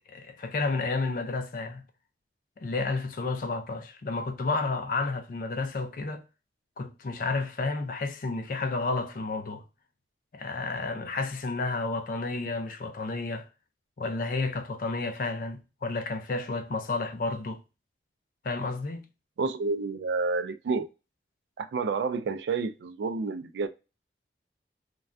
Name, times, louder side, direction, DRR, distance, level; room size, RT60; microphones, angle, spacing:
voice 1, 0.1-1.8 2.6-6.2 6.8-9.6 10.3-13.5 14.0-17.6 18.4-19.1, left 3 dB, 50° left, 0.4 m, -31 dB
voice 2, 19.4-20.9 21.6-23.7, right 4 dB, 75° right, 0.3 m, -29 dB
3.2 x 2.3 x 2.4 m
head